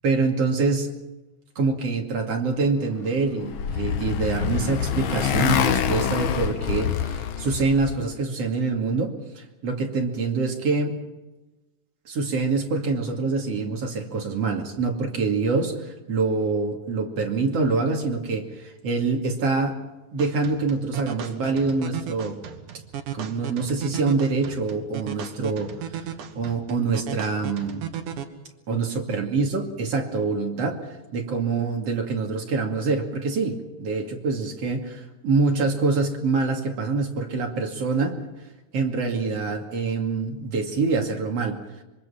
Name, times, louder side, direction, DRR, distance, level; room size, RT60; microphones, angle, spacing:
voice 1, 0.0-0.9 1.6-11.0 12.1-19.8 20.1-22.4 23.1-25.7 26.3-27.8 28.7-30.8 31.1-38.2 38.7-41.6, right 4 dB, 55° right, 1 dB, 3.4 m, -25 dB
Motorcycle, 3.0-8.0, left 8 dB, 75° left, 1.2 m, -26 dB
sound 1, 20.2-28.2, right 8 dB, 80° right, 3.0 m, -36 dB
26.0 x 24.0 x 5.8 m, 1.1 s
omnidirectional pair, 3.5 m